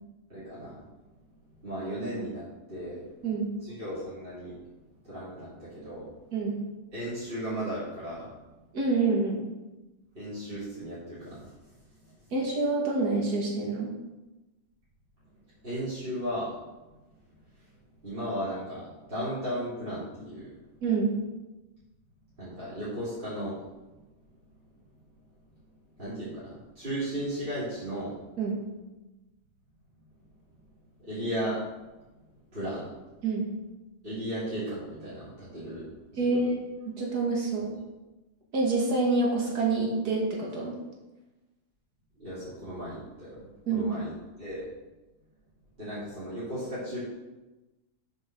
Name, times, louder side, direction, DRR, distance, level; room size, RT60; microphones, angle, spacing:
voice 1, 0.3-0.7 1.6-3.0 3.6-4.5 5.1-6.0 6.9-8.3 10.1-11.4 15.6-16.5 18.0-20.4 22.4-23.5 26.0-28.1 31.0-31.6 32.5-32.8 34.0-35.8 36.1-36.4 42.2-43.5 43.7-44.1 44.4-44.6 45.8-47.0, equal, 35° right, -12 dB, 3.4 m, -35 dB
voice 2, 8.7-9.4 12.3-13.9 20.8-21.1 28.4-28.6 33.2-33.4 36.2-37.7 38.5-40.8 43.7-43.9, right 3 dB, 85° right, -2 dB, 2.1 m, -27 dB
7.8 x 5.2 x 6.3 m, 1.1 s
omnidirectional pair, 1.6 m